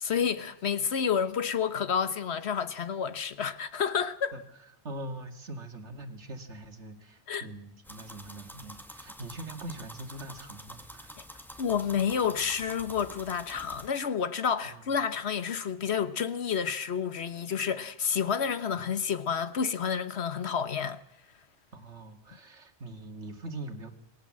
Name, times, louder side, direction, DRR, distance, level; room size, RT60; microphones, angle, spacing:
voice 1, 0.0-4.4 7.3-7.5 11.6-21.0, left 7 dB, 70° left, 1.4 m, -30 dB
voice 2, 4.8-11.1 14.6-14.8 18.7-18.9 21.7-23.9, right 1 dB, 85° right, 2.5 m, -42 dB
sound 1, 7.8-13.9, equal, ahead, 1.9 m, -47 dB
27.0 x 19.5 x 7.6 m
omnidirectional pair, 1.2 m